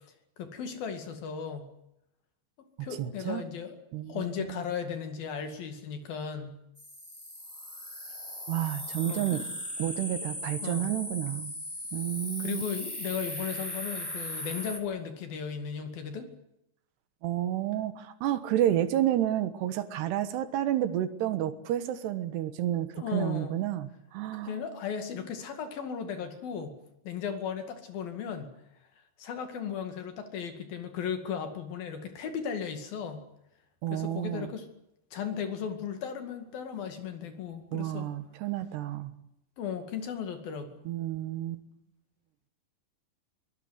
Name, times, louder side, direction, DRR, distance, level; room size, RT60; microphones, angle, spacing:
voice 1, 0.4-1.7 2.8-3.8 4.1-6.6 9.0-9.4 10.6-10.9 12.4-16.3 23.0-23.5 24.5-26.7 27.0-28.5 29.2-33.2 33.9-34.7 35.1-38.1 39.6-40.8, left 7 dB, 60° left, 7 dB, 3.8 m, -36 dB
voice 2, 2.8-3.4 3.9-4.6 8.5-9.4 9.8-11.5 11.9-12.6 17.2-24.5 33.8-34.5 37.7-39.1 40.9-41.6, right 12 dB, 75° right, 12 dB, 3.3 m, -30 dB
sound 1, 6.8-14.8, left 1 dB, 5° left, 2.2 m, -38 dB
23.0 x 19.0 x 8.0 m, 0.82 s
omnidirectional pair, 4.9 m